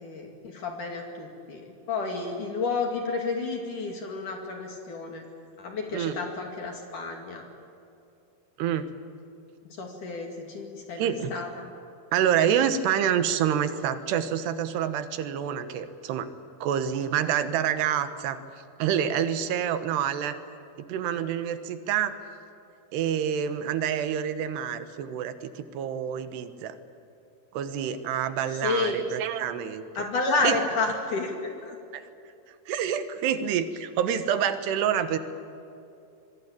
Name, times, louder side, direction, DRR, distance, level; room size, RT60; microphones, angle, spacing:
voice 1, 0.0-5.3 5.6-7.4 9.8-11.7 28.6-29.0 30.0-31.8, left 3 dB, 55° left, 2 dB, 3.5 m, -31 dB
voice 2, 8.6-8.9 11.0-11.3 12.1-16.3 16.6-18.4 18.8-20.4 20.8-22.1 22.9-26.7 27.5-29.9 30.4-30.6 31.9-32.0 32.7-35.2, right 9 dB, 80° right, 10 dB, 3.3 m, -27 dB
26.5 x 22.0 x 8.7 m, 2.7 s
omnidirectional pair, 4.8 m